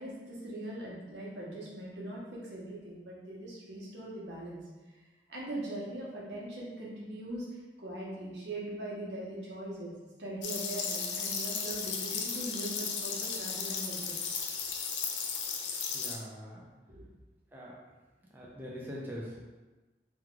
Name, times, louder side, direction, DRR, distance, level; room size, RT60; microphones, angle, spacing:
voice 1, 0.0-4.6 5.3-9.9 10.2-14.2 16.9-17.1, right 1 dB, 80° right, -5 dB, 0.9 m, -41 dB
sound 1, 10.4-16.2, left 6 dB, 80° left, 0.4 m, -35 dB
voice 2, 15.9-16.7 17.5-17.8 18.3-19.4, equal, 10° right, -5 dB, 0.4 m, -42 dB
3.0 x 2.3 x 3.7 m, 1.2 s
head